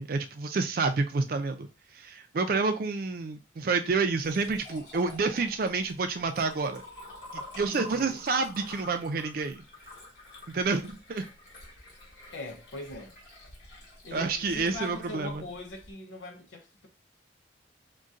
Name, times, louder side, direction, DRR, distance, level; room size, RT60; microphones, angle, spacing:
voice 1, 0.0-1.7 1.9-6.8 7.3-9.6 10.5-11.3 14.1-15.4, right 4 dB, 50° right, 0.4 m, -29 dB
Liquid, 3.9-15.9, left 1 dB, 60° left, 1.3 m, -48 dB
voice 2, 7.7-8.3 12.3-13.1 14.0-16.9, left 1 dB, 80° left, 0.7 m, -41 dB
3.9 x 2.2 x 2.4 m
head